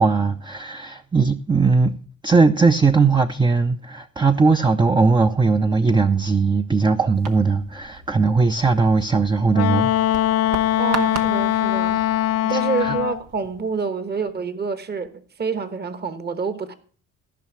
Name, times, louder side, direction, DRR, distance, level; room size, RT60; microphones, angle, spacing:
voice 1, 0.0-1.9 2.2-9.9 12.5-13.0, right 4 dB, 15° right, 0.5 m, -19 dB
sound 1, 7.1-13.7, right 6 dB, 80° right, 1.2 m, -38 dB
Wind instrument woodwind instrument, 9.5-13.2, left 12 dB, 55° left, 0.4 m, -21 dB
voice 2, 10.8-12.0 12.4-15.1 15.4-16.7, right 5 dB, 35° right, 1.1 m, -27 dB
14.5 x 5.6 x 6.2 m
cardioid pair, 90°, 30 cm